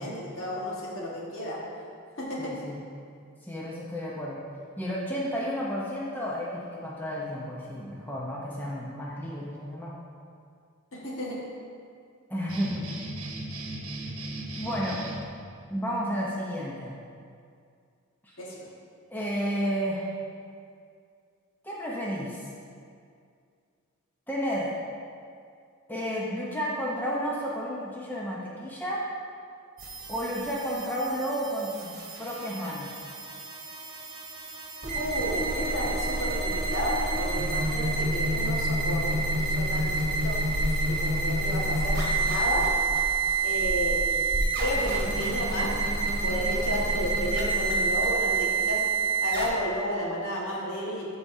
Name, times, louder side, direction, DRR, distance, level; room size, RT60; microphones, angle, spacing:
voice 1, 0.0-1.6 2.2-2.5 10.9-11.4 18.4-18.6 34.9-40.4 40.9-42.7 43.4-44.2 44.6-45.8 46.2-48.8 49.2-51.2, equal, 65° left, -5 dB, 1.6 m, -32 dB
voice 2, 2.4-2.8 3.4-4.4 4.8-9.9 12.3-12.8 14.6-15.0 15.7-16.9 18.2-18.4 19.1-20.1 21.6-22.4 24.3-24.7 25.9-29.0 30.1-32.9, equal, 10° left, -5 dB, 0.7 m, -32 dB
sound 1, 12.5-15.2, right 1 dB, 90° right, 0.9 m, -37 dB
sound 2, 29.8-49.5, right 3 dB, 50° right, 1.2 m, -28 dB
sound 3, 39.8-45.0, equal, 25° right, 1.4 m, -34 dB
13.0 x 4.8 x 2.7 m, 2.3 s
head